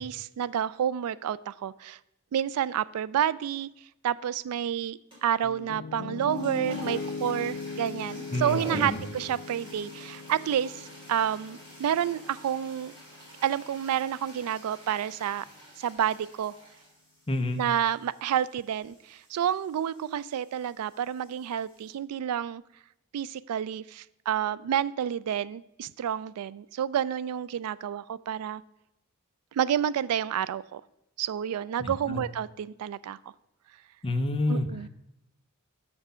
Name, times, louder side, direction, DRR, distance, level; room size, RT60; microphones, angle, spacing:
voice 1, 0.0-2.0 2.3-3.7 4.0-10.8 11.1-12.9 13.4-15.4 15.8-16.5 17.6-22.6 23.1-28.6 29.5-30.8 31.2-33.2 34.5-34.9, right 9 dB, 80° right, 20 dB, 0.3 m, -29 dB
sound 1, 5.1-5.4 6.1-21.9, right 1 dB, 25° right, 2.8 m, -47 dB
Piano, 5.4-13.5, left 5 dB, 65° left, 0.4 m, -40 dB
voice 2, 8.3-9.0 17.3-17.6 31.8-32.2 34.0-34.7, left 2 dB, 25° left, 6 dB, 0.6 m, -29 dB
6.5 x 6.0 x 5.5 m, 0.87 s
head